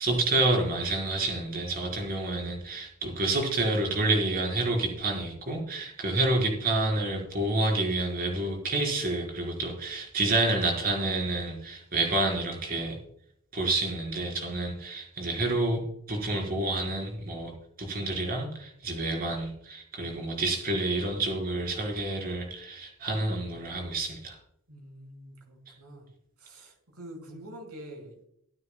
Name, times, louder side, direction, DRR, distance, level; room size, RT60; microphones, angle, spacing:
voice 1, 0.0-13.0 13.5-15.8 16.1-17.5 17.8-24.4, right 2 dB, 40° right, 0 dB, 4.3 m, -28 dB
voice 2, 24.7-26.1 26.4-28.2, right 1 dB, 80° right, 1 dB, 5.2 m, -46 dB
24.0 x 9.6 x 2.3 m, 0.72 s
head